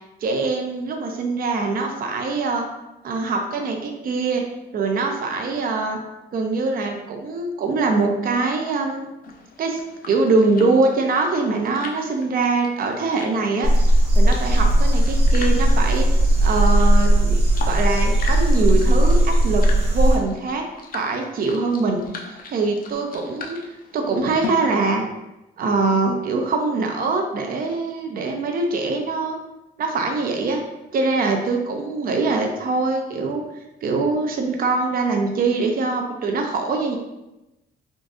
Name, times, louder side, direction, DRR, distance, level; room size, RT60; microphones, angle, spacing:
voice 1, 0.2-2.7 3.0-4.5 4.7-6.0 6.3-9.1 9.6-9.8 10.1-13.7 14.2-16.1 16.4-17.4 17.6-19.7 19.9-20.6 20.9-22.0 22.5-23.6 23.9-25.0 25.6-29.4 29.8-30.6 30.9-33.4 33.8-37.0, right 3 dB, 50° right, 2 dB, 0.5 m, -23 dB
sound 1, 9.2-24.5, left 4 dB, 45° left, 0.5 m, -39 dB
sound 2, 13.6-20.2, right 1 dB, 30° right, 1.1 m, -17 dB
3.8 x 2.4 x 2.4 m, 0.96 s
cardioid pair, 90°, 20 cm